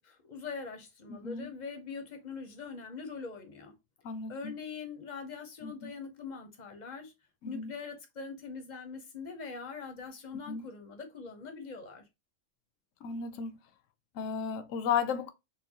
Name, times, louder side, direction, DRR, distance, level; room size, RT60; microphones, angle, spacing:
voice 1, 0.0-3.8 4.3-7.1 7.4-12.0, left 5 dB, 45° left, 0.7 m, -42 dB
voice 2, 1.1-1.5 4.0-4.5 5.6-5.9 7.4-7.7 10.5-10.6 13.0-13.6 14.2-15.3, left 7 dB, 85° left, 1.0 m, -34 dB
4.1 x 2.2 x 2.7 m
omnidirectional pair, 1.3 m